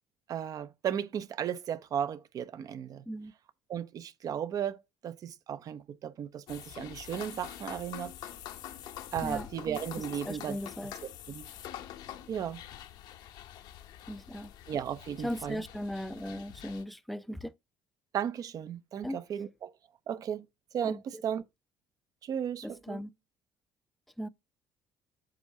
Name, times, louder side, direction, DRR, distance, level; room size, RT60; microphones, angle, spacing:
voice 1, 0.3-3.1 3.7-8.1 9.1-10.6 11.3-11.5 12.3-12.6 14.7-15.6 18.1-19.7 20.1-20.5 20.7-21.4 22.2-23.0, right 9 dB, 50° right, 0.7 m, -35 dB
sound 1, 6.5-16.8, left 11 dB, 70° left, 0.9 m, -45 dB
voice 2, 10.2-10.9 14.1-14.5 15.2-17.5 19.0-19.2 20.8-21.2 22.6-23.1 24.2-24.3, equal, ahead, 0.5 m, -38 dB
7.8 x 2.7 x 5.6 m
cardioid pair, 100°, 8 cm